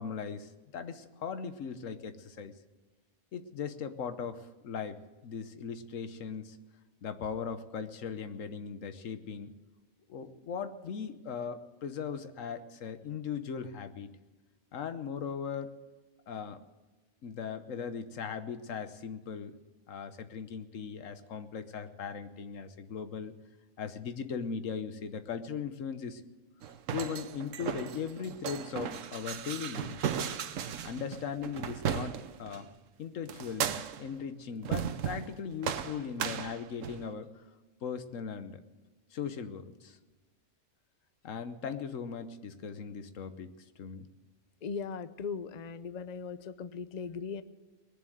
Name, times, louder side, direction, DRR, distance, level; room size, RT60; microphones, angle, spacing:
voice 1, 0.0-2.5 3.3-6.6 7.0-9.5 10.1-14.1 14.7-15.7 16.3-16.6 17.2-19.5 19.9-23.3 23.8-26.2 26.9-30.0 30.8-32.7 33.0-33.7 34.0-37.3 37.8-38.6 39.1-40.0 41.2-43.5 43.8-44.1, left 6 dB, 75° left, 10 dB, 1.3 m, -39 dB
sound 1, 26.6-32.6 33.3-34.1 34.6-35.3 35.6-37.1, right 8 dB, 75° right, 1.1 m, -36 dB
voice 2, 44.6-47.4, left 5 dB, 45° left, 13 dB, 0.6 m, -38 dB
20.5 x 7.3 x 9.2 m, 1.2 s
omnidirectional pair, 1.3 m